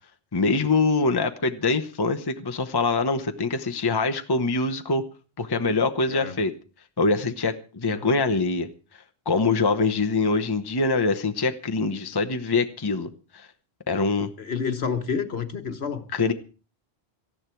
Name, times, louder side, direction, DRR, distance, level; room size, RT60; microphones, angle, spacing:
voice 1, 0.3-5.0 5.4-6.5 7.0-8.7 9.3-13.5 13.9-14.3 16.1-16.3, left 3 dB, 25° left, 6 dB, 0.8 m, -24 dB
voice 2, 14.4-16.0, left 6 dB, 70° left, 9 dB, 1.4 m, -29 dB
18.0 x 14.0 x 4.6 m, 0.36 s
omnidirectional pair, 1.1 m